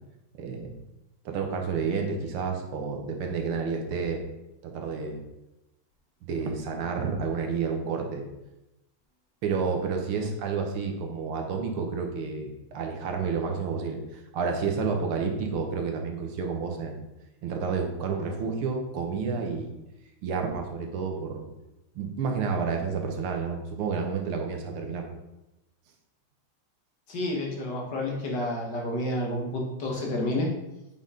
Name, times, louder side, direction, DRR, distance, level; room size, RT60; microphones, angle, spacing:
voice 1, 0.4-0.7 1.3-4.2 4.6-5.2 6.3-8.3 9.4-17.0 17.4-19.8 20.2-21.5 22.0-25.1, right 5 dB, 80° right, 3 dB, 2.0 m, -30 dB
voice 2, 27.1-30.6, left 1 dB, 55° left, -1 dB, 1.9 m, -30 dB
8.7 x 5.5 x 3.8 m, 0.95 s
omnidirectional pair, 2.4 m